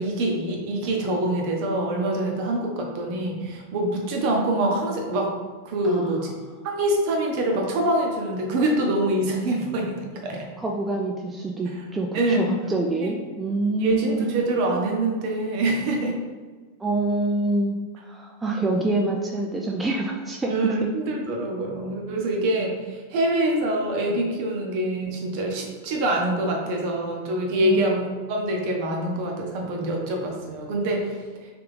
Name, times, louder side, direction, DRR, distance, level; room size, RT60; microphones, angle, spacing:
voice 1, 0.0-5.3 5.6-6.3 6.6-10.5 12.1-12.5 13.0-13.1 13.8-16.2 20.5-31.5, right 1 dB, 45° right, 1 dB, 0.8 m, -25 dB
voice 2, 5.8-6.3 10.6-14.2 16.8-20.7 27.6-27.9, right 2 dB, 10° right, 0 dB, 0.4 m, -26 dB
3.4 x 3.4 x 3.3 m, 1.4 s
figure-of-eight pair, 90°, 0 cm